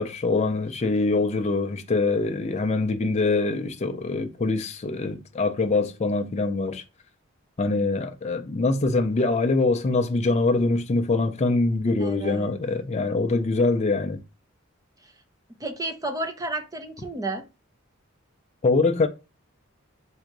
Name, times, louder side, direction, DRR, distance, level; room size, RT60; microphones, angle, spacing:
voice 1, 0.0-6.8 7.6-14.2 18.6-19.1, left 3 dB, 35° left, 0.4 m, -24 dB
voice 2, 12.0-12.5 15.6-17.4, right 2 dB, 15° right, 0.6 m, -31 dB
3.7 x 2.7 x 4.5 m
head